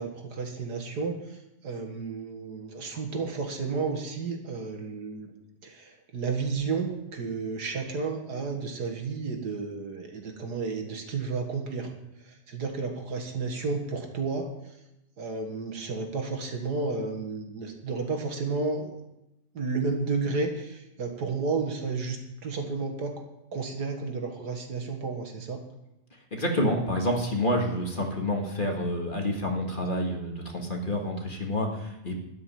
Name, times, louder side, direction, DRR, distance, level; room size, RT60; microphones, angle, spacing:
voice 1, 0.0-5.3 5.6-11.9 12.2-14.5 15.2-18.9 19.5-23.2 23.5-25.6, right 4 dB, 75° right, 3 dB, 2.2 m, -32 dB
voice 2, 26.3-32.2, left 1 dB, 30° left, 1 dB, 1.9 m, -28 dB
13.0 x 6.1 x 9.2 m, 0.91 s
omnidirectional pair, 1.8 m